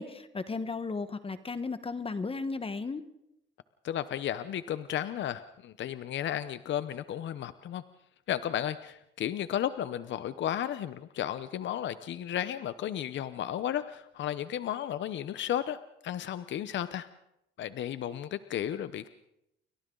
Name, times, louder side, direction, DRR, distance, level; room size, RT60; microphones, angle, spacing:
voice 1, 0.0-3.0, left 4 dB, 30° left, 11 dB, 1.3 m, -35 dB
voice 2, 3.8-7.8 8.3-17.1 17.6-19.1, left 11 dB, 70° left, 13 dB, 0.8 m, -34 dB
29.5 x 23.0 x 3.9 m, 0.82 s
cardioid pair, 90°, 20 cm